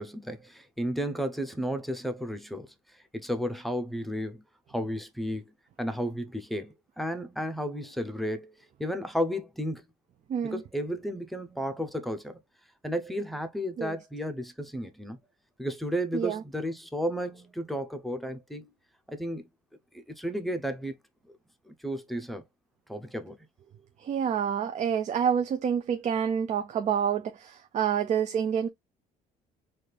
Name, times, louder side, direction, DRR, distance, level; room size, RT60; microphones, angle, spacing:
voice 1, 0.0-2.7 3.1-4.4 4.7-5.4 5.8-8.5 8.8-9.8 10.4-12.4 12.8-15.2 15.6-18.7 19.1-19.4 19.9-21.0 21.7-22.4 22.9-23.4, equal, ahead, 0.7 m, -33 dB
voice 2, 10.3-10.6 13.8-13.9 16.1-16.4 24.0-28.7, right 8 dB, 45° right, 0.5 m, -28 dB
4.2 x 2.4 x 3.3 m
cardioid pair, 110°, 17 cm